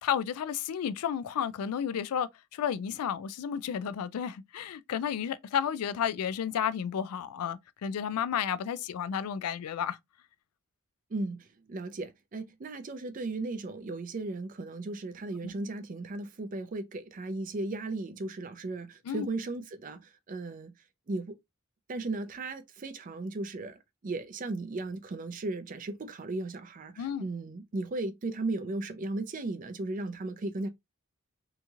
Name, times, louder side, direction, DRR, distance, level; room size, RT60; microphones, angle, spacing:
voice 1, 0.0-10.0 15.4-15.5 19.1-19.3 27.0-27.3, left 8 dB, 85° left, 0.3 m, -32 dB
voice 2, 11.1-20.7 21.1-21.3 21.9-30.7, right 2 dB, 35° right, 0.4 m, -36 dB
2.9 x 2.4 x 2.6 m
head